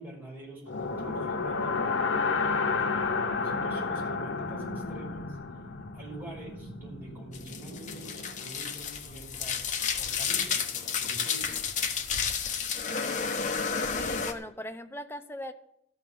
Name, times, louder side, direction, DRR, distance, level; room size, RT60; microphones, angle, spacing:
voice 1, 0.0-2.0 2.4-3.2 3.4-5.4 5.9-11.5, right 2 dB, 10° right, -4 dB, 5.7 m, -46 dB
sound 1, 0.7-8.7, left 4 dB, 80° left, 1.0 m, -32 dB
sound 2, 7.3-14.3, left 6 dB, 40° left, 1.1 m, -31 dB
voice 2, 13.9-15.5, left 1 dB, 10° left, 6 dB, 0.8 m, -39 dB
13.5 x 5.6 x 8.8 m, 0.76 s
head